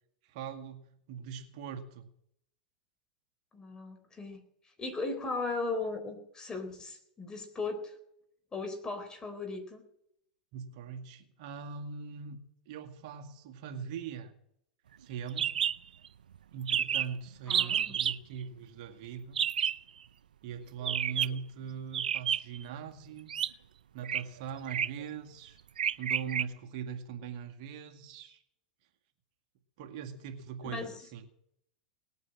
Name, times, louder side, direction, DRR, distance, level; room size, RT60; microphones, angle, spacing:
voice 1, 0.2-0.8 1.1-2.1 10.5-14.3 15.0-15.5 16.5-19.4 20.4-23.6 23.9-25.6 26.0-28.4 29.8-31.3, right 7 dB, 55° right, 4 dB, 2.0 m, -41 dB
voice 2, 3.5-4.4 4.8-7.9 8.5-9.8 17.5-18.0 30.6-30.9, left 3 dB, 15° left, 6 dB, 4.0 m, -37 dB
sound 1, 15.4-15.8 16.0-16.1 16.4-16.5 16.7-17.1 17.5-18.2 19.4-19.8 20.8-21.4 21.9-22.6 23.3-23.5 24.0-24.2 24.7-25.0 25.8-26.4, right 9 dB, 85° right, 0.7 m, -30 dB
19.0 x 9.5 x 7.7 m, 0.73 s
hypercardioid pair, 110°, 4 cm